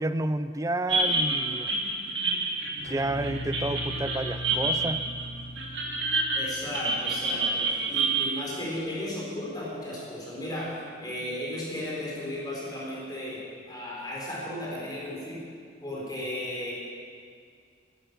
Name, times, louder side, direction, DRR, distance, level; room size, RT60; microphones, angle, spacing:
voice 1, 0.0-1.8 2.8-5.0, right 2 dB, 20° right, 12 dB, 0.5 m, -30 dB
sound 1, 0.9-8.3, right 3 dB, 70° right, 2.3 m, -28 dB
sound 2, 2.9-8.1, left 1 dB, 80° left, 4.9 m, -40 dB
voice 2, 6.3-10.7 11.0-13.4 13.7-15.4 15.8-16.7, left 1 dB, 20° left, -6 dB, 4.5 m, -35 dB
15.5 x 11.5 x 6.9 m, 2.2 s
head